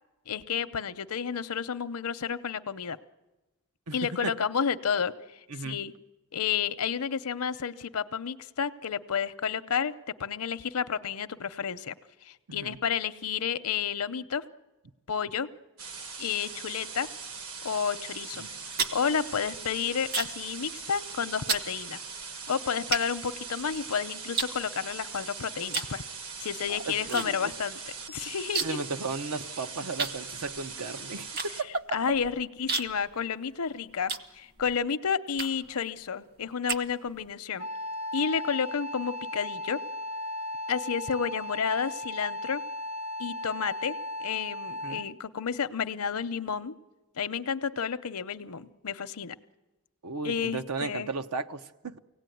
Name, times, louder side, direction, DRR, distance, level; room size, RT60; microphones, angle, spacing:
voice 1, 0.3-3.0 3.9-5.1 5.6-5.9 6.3-11.9 12.2-14.4 15.1-15.5 16.2-17.1 17.6-18.4 18.9-22.0 22.5-26.0 26.4-27.8 28.1-28.8 31.9-37.7 38.1-39.8 40.7-42.6 43.2-46.7 47.2-49.4 50.2-51.1, left 7 dB, 75° left, 13 dB, 0.7 m, -31 dB
voice 2, 5.5-5.8 12.5-12.8 18.4-18.5 26.7-27.5 28.6-32.0 44.8-45.0 50.0-52.0, right 3 dB, 85° right, 10 dB, 0.9 m, -35 dB
sound 1, 15.8-31.6, right 5 dB, 70° right, 1.7 m, -41 dB
sound 2, 18.4-20.5 20.8-21.1 21.5-21.7 22.3-22.4 22.9-23.9 24.4-25.2 25.7-26.0 26.3-27.3 27.5-27.6 27.9-28.9 29.2-29.3 30.0-34.8 35.3-35.8 36.2-37.3, right 4 dB, 45° right, 1.1 m, -33 dB
Wind instrument woodwind instrument, 37.6-45.2, left 1 dB, 30° right, 0.7 m, -36 dB
24.0 x 17.5 x 9.2 m, 1.1 s
head